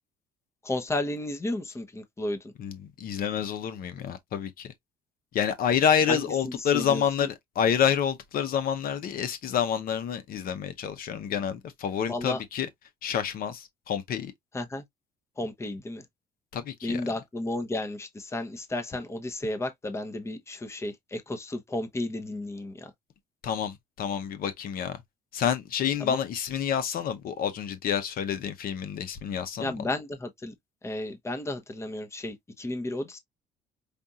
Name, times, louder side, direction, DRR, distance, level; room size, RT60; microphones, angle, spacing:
voice 1, 0.6-2.5 6.1-7.3 12.1-12.4 14.5-14.8 15.4-16.0 16.8-22.9 26.0-26.2 29.6-30.5 30.8-33.2, left 2 dB, 15° left, 0.8 m, -33 dB
voice 2, 2.6-4.7 5.3-12.7 13.0-14.3 16.5-17.0 23.4-25.0 25.3-29.9, left 8 dB, 60° left, 0.8 m, -28 dB
5.1 x 2.4 x 2.8 m
cardioid pair, 110°, 17 cm